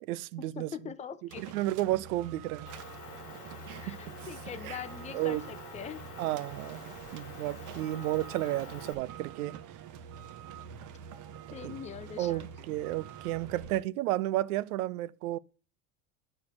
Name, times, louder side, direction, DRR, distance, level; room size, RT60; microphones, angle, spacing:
voice 1, 0.0-0.7 1.4-2.7 3.7-4.1 4.6-4.8 5.1-5.4 6.2-6.8 7.1-9.5 11.6-11.8 12.2-15.4, right 15 dB, 65° right, 0.7 m, -32 dB
voice 2, 0.6-1.6 3.7-6.0 11.5-12.5, left 8 dB, 15° left, 0.6 m, -42 dB
sound 1, 1.3-13.8, right 8 dB, 40° right, 1.0 m, -46 dB
Motor vehicle (road) / Engine, 2.7-8.9, left 6 dB, 90° left, 1.7 m, -48 dB
9.5 x 4.5 x 5.8 m
hypercardioid pair, 90°, 46 cm